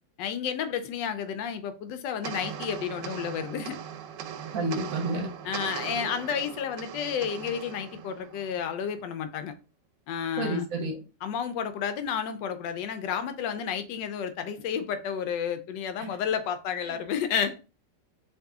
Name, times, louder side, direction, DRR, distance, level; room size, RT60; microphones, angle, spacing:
voice 1, 0.2-3.8 5.4-9.5 10.1-10.6 11.2-17.6, left 7 dB, 85° left, 1.3 m, -31 dB
sound 1, 2.2-8.9, right 8 dB, 85° right, 1.2 m, -39 dB
voice 2, 4.5-5.3 10.4-11.0 16.0-16.1 16.9-17.0, right 2 dB, 60° right, 1.0 m, -30 dB
3.8 x 2.7 x 3.5 m
omnidirectional pair, 1.9 m